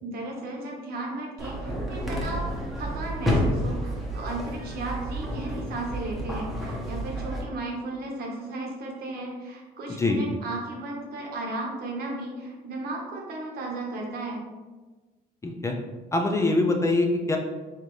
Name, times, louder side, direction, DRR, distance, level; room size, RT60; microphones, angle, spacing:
voice 1, 0.0-2.5 2.8-14.4, right 2 dB, 65° right, -1 dB, 1.2 m, -35 dB
sound 1, 1.4-7.4, equal, ahead, 1.0 m, -30 dB
voice 2, 15.4-15.8 16.1-17.4, left 2 dB, 15° left, 2 dB, 0.5 m, -23 dB
4.2 x 3.5 x 3.2 m, 1.3 s
cardioid pair, 110°, 17 cm